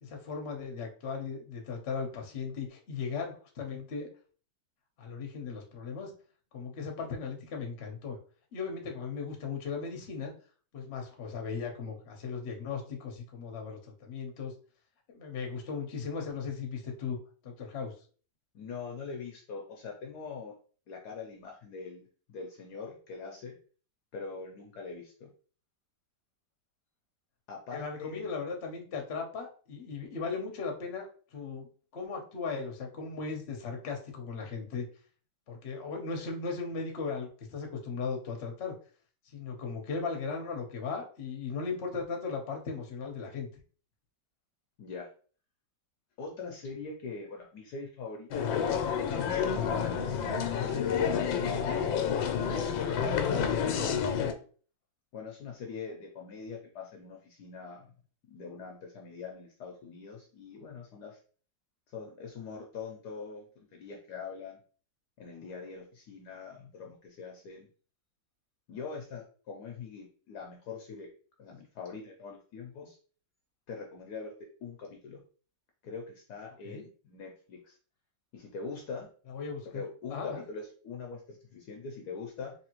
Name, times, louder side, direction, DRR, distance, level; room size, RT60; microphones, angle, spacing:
voice 1, 0.0-4.1 5.0-6.1 6.5-8.2 8.5-10.3 10.7-14.5 15.1-17.2 17.4-17.9 27.7-31.7 31.9-34.8 35.5-38.7 39.3-43.5 53.7-53.9 76.6-76.9 79.3-79.8 80.1-80.4, left 5 dB, 45° left, 2 dB, 0.9 m, -37 dB
voice 2, 18.5-20.5 20.9-23.5 24.1-25.3 27.5-28.3 44.8-45.1 46.2-52.7 55.1-57.9 58.3-61.2 61.9-64.6 65.2-67.7 68.7-71.1 71.4-73.0 73.7-74.3 74.6-75.2 75.8-77.8 78.3-79.1 79.7-82.5, left 5 dB, 70° left, 1 dB, 1.1 m, -43 dB
sound 1, 48.3-54.3, left 7 dB, 85° left, 1.4 m, -29 dB
4.0 x 3.0 x 2.9 m, 0.42 s
omnidirectional pair, 2.0 m